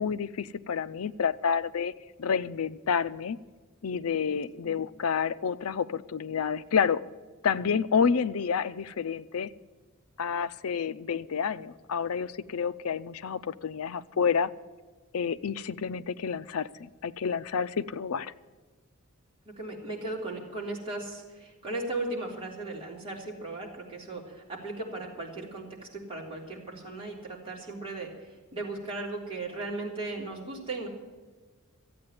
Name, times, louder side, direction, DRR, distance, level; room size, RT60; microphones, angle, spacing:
voice 1, 0.0-1.9 2.2-3.4 3.8-7.0 7.4-9.5 10.2-14.5 15.1-18.3, left 6 dB, 75° left, 14 dB, 0.5 m, -29 dB
voice 2, 19.6-25.7 25.9-30.9, right 2 dB, 25° right, -3 dB, 3.5 m, -37 dB
14.0 x 8.7 x 9.1 m, 1.3 s
head